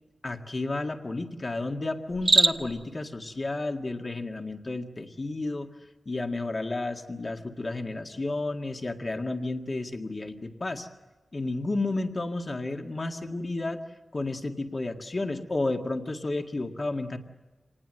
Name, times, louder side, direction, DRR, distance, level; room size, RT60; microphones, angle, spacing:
voice 1, 0.2-5.7 6.1-10.9 11.3-13.8 14.1-17.2, left 2 dB, 35° left, 4 dB, 1.9 m, -32 dB
Cricket, 2.1-2.9, right 3 dB, 40° right, 1.2 m, -23 dB
26.5 x 19.5 x 7.8 m, 1.2 s
wide cardioid pair, 105°, 0 cm